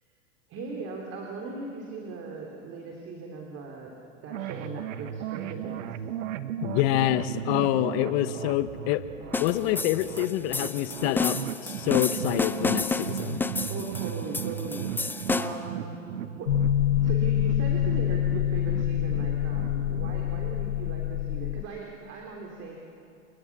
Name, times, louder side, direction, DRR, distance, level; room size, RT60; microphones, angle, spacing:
voice 1, 0.5-5.9 13.7-16.5 17.0-22.8, right 4 dB, 35° right, 0 dB, 3.5 m, -39 dB
sound 1, 4.3-20.2, right 10 dB, 75° right, 1.2 m, -37 dB
voice 2, 6.6-9.0 9.4-13.5, left 13 dB, 50° left, 12 dB, 1.2 m, -27 dB
sound 2, 9.3-15.7, left 3 dB, 5° left, 0.5 m, -31 dB
sound 3, 16.5-21.6, left 11 dB, 85° left, 1.0 m, -26 dB
29.0 x 22.5 x 6.1 m, 2.7 s
hypercardioid pair, 115°, 39 cm